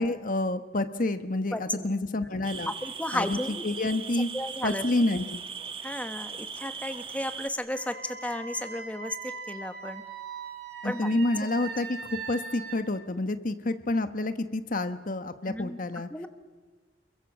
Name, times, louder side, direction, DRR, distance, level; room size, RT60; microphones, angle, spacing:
voice 1, 0.0-2.7 3.1-3.4 3.6-4.3 4.6-5.4 10.8-16.1, left 2 dB, 50° left, 10 dB, 1.2 m, -28 dB
voice 2, 1.5-2.3 2.7-3.6 4.3-4.8 5.8-10.0 10.8-11.4 15.5-15.8 16.1-16.3, left 1 dB, 10° left, 8 dB, 1.2 m, -34 dB
sound 1, 2.4-7.5, right 6 dB, 30° right, 1.2 m, -39 dB
Wind instrument woodwind instrument, 7.7-12.8, right 5 dB, 60° right, 5.4 m, -40 dB
29.0 x 22.0 x 7.4 m, 1.4 s
head